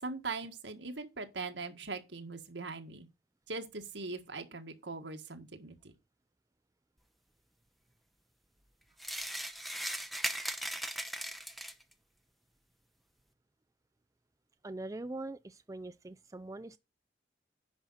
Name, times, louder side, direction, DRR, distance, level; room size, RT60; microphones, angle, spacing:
voice 1, 0.0-3.1 3.5-5.8, right 3 dB, 80° right, 1.7 m, -41 dB
sound 1, 9.0-11.9, equal, ahead, 0.8 m, -38 dB
voice 2, 14.6-16.8, right 2 dB, 20° right, 0.4 m, -42 dB
10.5 x 5.8 x 4.1 m
head